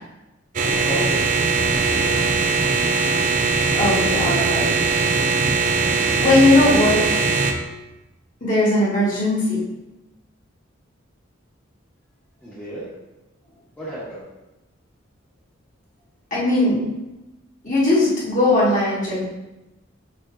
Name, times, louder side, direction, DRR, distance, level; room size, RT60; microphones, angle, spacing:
sound 1, 0.6-7.5, right 4 dB, 40° right, 0.5 m, -20 dB
voice 1, 0.7-1.4 1.7-2.1 12.4-12.9 13.8-14.2, right 1 dB, 10° left, -10 dB, 1.3 m, -32 dB
voice 2, 3.7-4.7 6.2-7.0 8.4-9.6 16.3-16.8 17.6-19.3, left 2 dB, 40° left, -7 dB, 2.1 m, -18 dB
6.5 x 5.3 x 2.8 m, 1.0 s
head